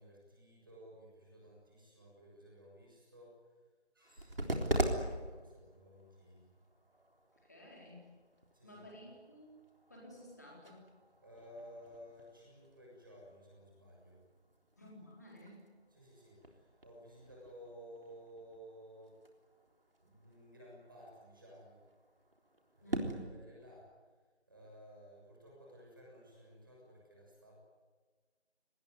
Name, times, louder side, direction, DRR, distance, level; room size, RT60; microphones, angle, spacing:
voice 1, 0.0-3.5 3.9-6.5 8.5-8.8 11.2-14.2 15.9-19.2 20.0-21.8 22.7-23.9 24.5-27.5, equal, 20° right, -4 dB, 6.7 m, -56 dB
sound 1, 4.0-23.1, right 1 dB, 55° right, 3.7 m, -44 dB
voice 2, 4.4-4.7 7.4-8.1 8.6-9.6 9.9-10.9 14.8-15.7 22.8-23.2, left 1 dB, 15° left, -2 dB, 4.1 m, -54 dB
27.5 x 20.0 x 9.6 m, 1.4 s
figure-of-eight pair, 175°, 34 cm